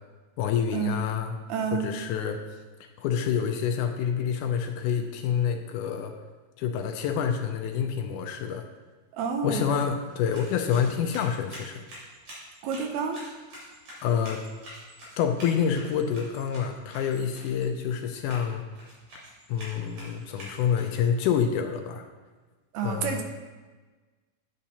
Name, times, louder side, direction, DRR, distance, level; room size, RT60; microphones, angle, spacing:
voice 1, 0.4-1.3 1.7-2.4 3.0-6.1 6.6-8.6 9.4-11.8 14.0-14.4 15.2-18.6 19.5-22.0 22.8-23.2, left 7 dB, 80° left, 5 dB, 2.0 m, -27 dB
voice 2, 1.5-1.9 9.1-9.8 12.6-13.2 22.7-23.2, right 6 dB, 80° right, 5 dB, 1.7 m, -29 dB
sound 1, 10.0-21.2, equal, 55° right, 4.2 m, -47 dB
9.2 x 8.6 x 2.8 m, 1.3 s
omnidirectional pair, 3.8 m